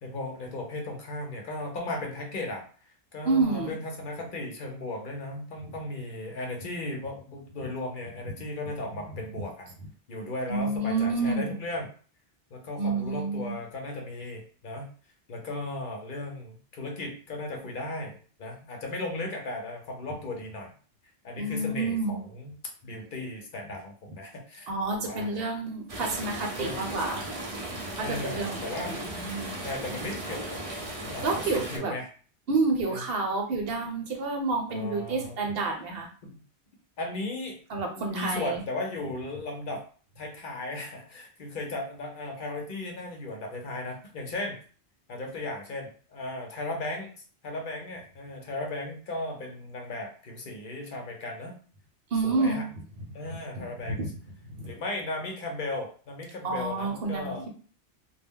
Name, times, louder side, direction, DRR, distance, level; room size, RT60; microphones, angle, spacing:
voice 1, 0.0-2.6 3.1-9.7 10.1-11.9 12.5-14.9 15.3-20.7 21.2-22.6 22.8-24.7 25.0-25.5 26.6-26.8 28.0-28.9 29.6-30.6 31.1-32.1 32.9-33.0 34.7-35.4 36.2-36.4 37.0-37.6 38.0-39.8 40.2-44.6 45.1-47.1 47.4-51.6 52.2-52.7 53.1-54.0 54.6-57.4, left 2 dB, 55° left, 1 dB, 0.7 m, -36 dB
voice 2, 3.2-3.7 10.5-11.5 12.8-13.6 21.4-22.2 24.7-27.3 28.0-29.5 31.2-31.9 32.5-36.1 37.7-38.6 52.1-52.6 53.5-54.1 54.5-54.7 56.4-57.5, right 3 dB, 65° right, 2 dB, 0.9 m, -29 dB
sound 1, 25.9-31.8, right 1 dB, 40° right, 0.6 m, -36 dB
2.2 x 2.1 x 3.5 m, 0.41 s
omnidirectional pair, 1.1 m